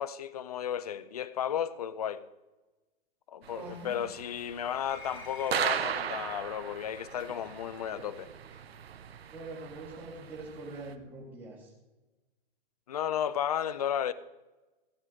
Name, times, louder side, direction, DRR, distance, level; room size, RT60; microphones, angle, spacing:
voice 1, 0.0-2.2 3.3-8.3 12.9-14.1, left 9 dB, 40° left, 0.5 m, -33 dB
sound 1, 3.4-10.9, right 8 dB, 90° right, 1.0 m, -38 dB
voice 2, 3.5-4.0 9.3-11.7, right 2 dB, 5° right, 2.1 m, -43 dB
sound 2, 4.8-6.1 7.4-7.6 8.5-8.7, left 3 dB, 85° left, 3.8 m, -49 dB
14.5 x 5.4 x 7.6 m
hypercardioid pair, 175°, 30 cm